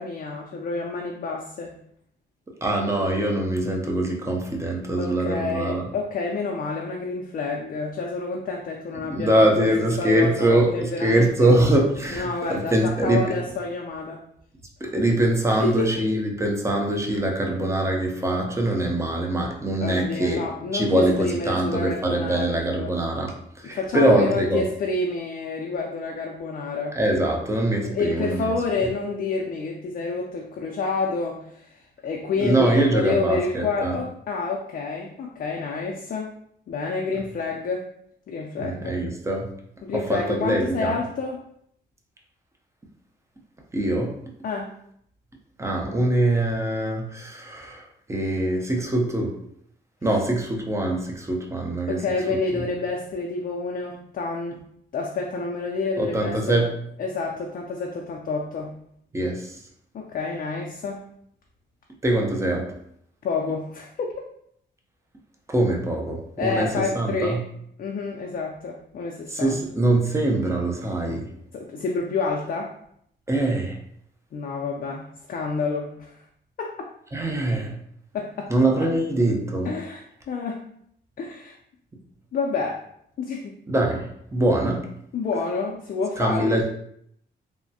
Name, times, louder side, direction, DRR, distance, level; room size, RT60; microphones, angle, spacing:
voice 1, 0.0-1.8 5.0-9.7 10.0-11.5 12.1-14.2 15.6-15.9 19.8-22.9 23.6-27.0 27.8-36.3 36.7-37.9 38.3-39.0 39.8-41.5 44.4-44.7 51.9-54.6 54.9-56.6 57.0-58.7 59.9-61.0 63.2-64.1 66.4-67.4 67.8-69.6 71.5-72.8 74.3-76.2 76.6-76.7 78.1-78.5 79.6-80.6 81.2-81.6 82.3-82.9 83.2-83.6 85.1-86.6, left 4 dB, 50° left, 0 dB, 0.4 m, -29 dB
voice 2, 2.6-5.9 9.1-13.3 14.8-20.5 20.7-24.6 27.0-28.5 32.4-34.0 38.6-39.5 39.9-41.0 43.7-44.2 45.6-49.4 50.0-52.0 52.5-52.6 56.0-56.7 59.1-59.6 62.0-62.7 65.5-67.4 69.3-71.3 73.3-73.8 77.1-77.7 78.5-79.7 83.7-84.9 86.2-86.6, right 1 dB, 15° right, 0 dB, 0.6 m, -23 dB
3.2 x 2.1 x 2.7 m, 0.70 s
cardioid pair, 100°, 19 cm